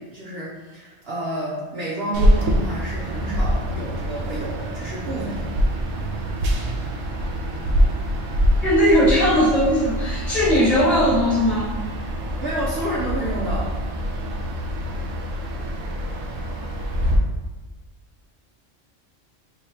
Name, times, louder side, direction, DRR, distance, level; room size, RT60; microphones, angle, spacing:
voice 1, 0.0-5.5 12.4-13.7, right 1 dB, 60° right, -7 dB, 0.9 m, -30 dB
sound 1, 2.1-17.2, equal, 90° right, 1.0 m, -25 dB
voice 2, 8.6-11.7, equal, 30° left, -6 dB, 1.2 m, -18 dB
4.7 x 2.8 x 2.8 m, 1.2 s
omnidirectional pair, 1.3 m